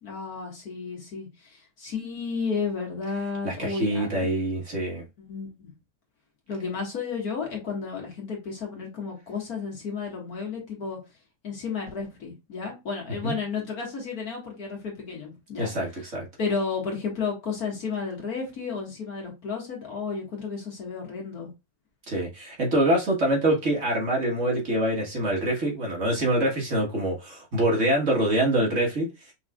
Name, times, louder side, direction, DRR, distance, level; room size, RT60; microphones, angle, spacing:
voice 1, 0.0-4.3 5.2-5.7 6.5-11.0 11.4-15.7 16.4-21.5, left 5 dB, 65° left, 2.3 m, -32 dB
voice 2, 3.4-5.1 13.2-13.3 15.6-16.3 22.1-29.1, right 1 dB, 50° right, 1.9 m, -25 dB
5.6 x 3.6 x 2.4 m
omnidirectional pair, 1.7 m